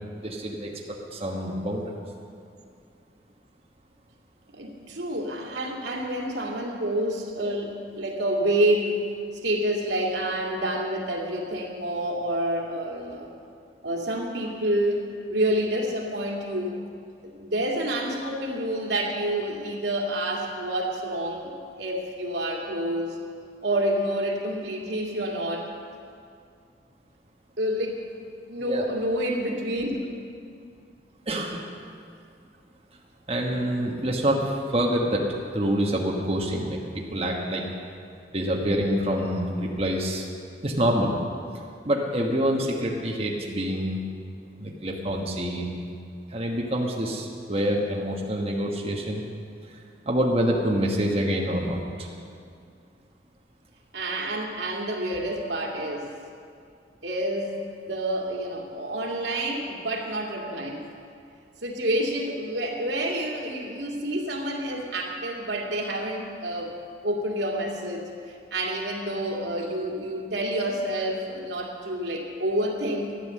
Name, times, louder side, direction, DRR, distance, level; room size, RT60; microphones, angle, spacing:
voice 1, 0.1-1.9 28.6-28.9 31.3-31.7 33.3-37.6 38.3-40.3 40.6-41.2 41.8-44.0 44.6-45.8 46.3-49.2 49.7-49.8 50.0-52.1, equal, 35° right, -2 dB, 1.3 m, -26 dB
voice 2, 4.5-9.0 9.4-13.3 13.8-15.0 15.3-16.8 17.3-21.5 21.8-23.2 23.6-25.7 27.6-28.0 28.5-30.0 53.9-56.1 57.0-57.5 57.9-60.8 61.6-66.7 67.0-68.1 68.5-73.2, right 1 dB, 85° right, 0 dB, 2.2 m, -28 dB
13.5 x 10.0 x 7.6 m, 2.3 s
head